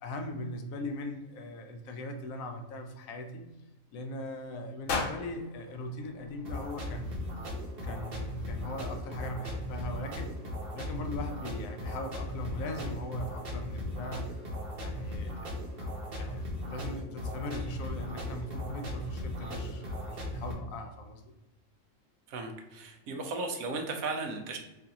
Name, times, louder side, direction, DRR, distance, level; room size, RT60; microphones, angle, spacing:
voice 1, 0.0-3.5 3.9-7.1 7.8-10.3 10.7-14.4 14.8-15.9 16.2-21.2, left 1 dB, 75° left, 5 dB, 1.0 m, -40 dB
sound 1, 4.9-7.0, left 4 dB, 55° left, 0.7 m, -37 dB
sound 2, 6.4-20.5, left 1 dB, 50° right, 1.0 m, -37 dB
voice 2, 22.3-24.6, right 3 dB, 85° right, 4 dB, 1.1 m, -35 dB
4.7 x 2.5 x 2.8 m, 1.0 s
omnidirectional pair, 1.4 m